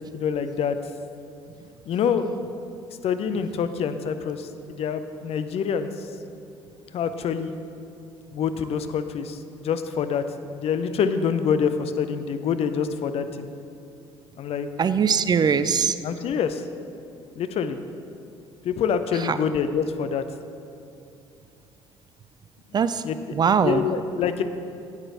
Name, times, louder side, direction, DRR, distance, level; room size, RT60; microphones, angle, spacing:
voice 1, 0.1-0.8 1.9-2.4 3.0-6.1 6.9-7.5 8.3-13.5 14.4-14.7 16.0-16.6 17.3-17.8 18.6-20.2 23.0-23.2 23.6-24.4, left 7 dB, 45° left, 10 dB, 0.6 m, -26 dB
voice 2, 14.8-16.0 19.1-19.4 22.7-23.0 23.3-23.9, right 6 dB, 30° right, 13 dB, 0.4 m, -21 dB
13.0 x 8.9 x 3.4 m, 2.6 s
figure-of-eight pair, 55°, 14 cm